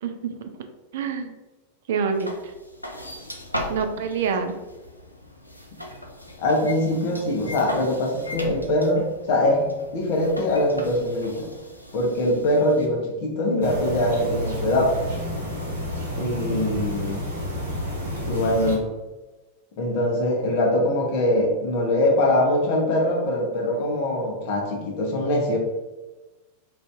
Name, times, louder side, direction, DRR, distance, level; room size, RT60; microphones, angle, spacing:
voice 1, 0.0-0.5 0.9-1.4 1.9-2.5 3.7-4.6, right 6 dB, 55° right, 6 dB, 0.3 m, -27 dB
sound 1, 2.1-12.9, left 1 dB, 90° left, 0.4 m, -38 dB
voice 2, 6.4-9.7 9.9-11.5 11.9-15.1 16.2-17.3 18.3-18.9 19.8-25.6, left 1 dB, 45° left, -1 dB, 0.8 m, -23 dB
sound 2, 13.6-18.8, equal, 75° right, 0.8 m, -30 dB
2.6 x 2.5 x 3.3 m, 1.2 s
figure-of-eight pair, 90°, 0 cm